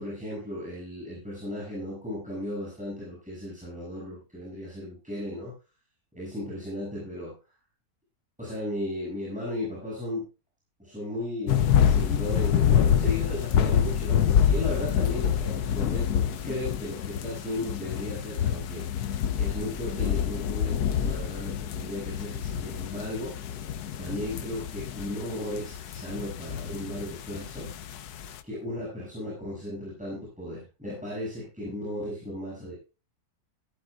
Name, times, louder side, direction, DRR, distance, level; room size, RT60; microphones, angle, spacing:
voice 1, 0.0-5.5 6.1-7.3 8.4-10.3 10.8-18.8 19.4-23.3 24.0-27.7 28.4-32.8, left 1 dB, 5° right, -7 dB, 7.1 m, -35 dB
sound 1, 11.5-28.4, left 9 dB, 90° left, 1.3 m, -27 dB
15.0 x 14.5 x 2.5 m, 0.30 s
omnidirectional pair, 1.6 m